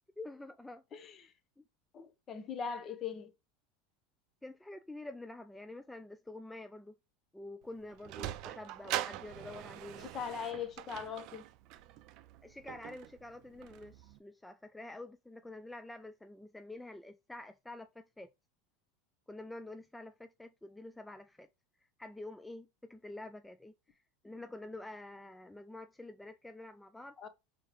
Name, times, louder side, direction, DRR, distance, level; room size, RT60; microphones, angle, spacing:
voice 1, 0.2-0.8 1.6-1.7 4.4-7.0 7.3-10.1 12.4-18.3 19.3-21.5 22.0-27.2, left 2 dB, 5° left, 0.3 m, -48 dB
voice 2, 1.9-3.3 10.1-11.4 27.2-27.3, left 7 dB, 35° left, 0.9 m, -40 dB
Sliding door, 7.6-14.2, right 14 dB, 55° right, 0.4 m, -43 dB
4.5 x 3.6 x 3.1 m
hypercardioid pair, 100°, 0 cm